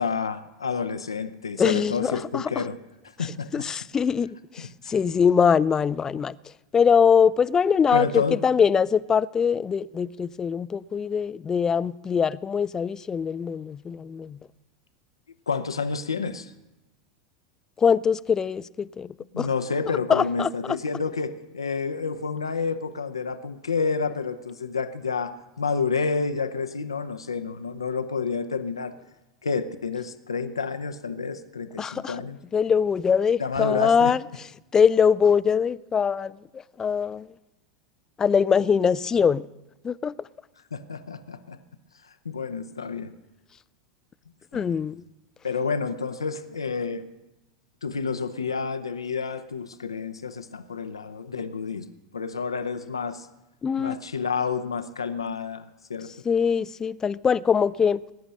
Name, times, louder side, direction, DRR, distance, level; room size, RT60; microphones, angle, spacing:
voice 1, 0.0-2.8 3.0-3.7 4.6-4.9 7.9-8.5 15.5-16.5 19.3-28.9 29.4-32.4 33.4-34.2 40.7-41.6 42.0-43.1 44.5-44.8 45.4-47.1 47.8-51.9 52.1-53.3 53.8-56.1, left 5 dB, 85° left, 0.7 m, -29 dB
voice 2, 1.6-2.4 3.5-6.3 6.7-14.4 17.8-19.1 19.4-19.5 20.1-20.8 31.8-32.1 32.5-34.2 34.7-36.4 36.8-37.3 38.2-39.4 39.8-40.1 44.5-45.0 53.6-54.0 56.3-58.0, left 6 dB, 25° left, 0.4 m, -22 dB
20.0 x 10.0 x 6.4 m
figure-of-eight pair, 85°, 3 cm